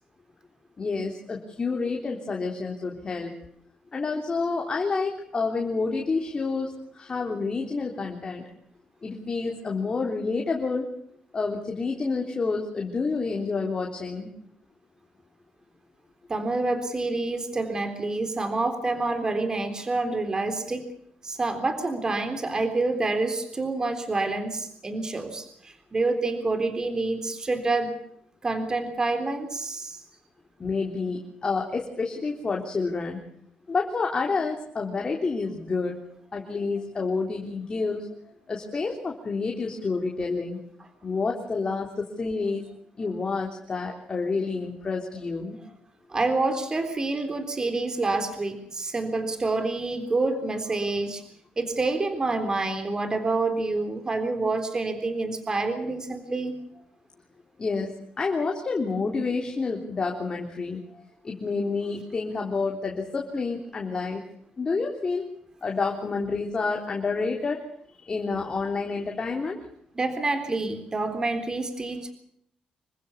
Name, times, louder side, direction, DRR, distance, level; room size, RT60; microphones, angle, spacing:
voice 1, 0.8-3.3 3.9-8.4 9.0-10.9 11.3-14.3 30.6-33.2 33.7-36.0 36.3-38.1 38.5-40.6 41.0-42.6 43.0-45.7 57.6-64.2 64.6-65.2 65.6-69.6, left 4 dB, 35° left, 1 dB, 3.5 m, -29 dB
voice 2, 16.3-20.8 21.2-27.9 28.4-30.0 46.1-51.2 51.6-56.5 70.0-72.1, right 3 dB, 25° right, 8 dB, 3.7 m, -27 dB
27.0 x 15.5 x 7.2 m, 0.71 s
cardioid pair, 100°, 3 cm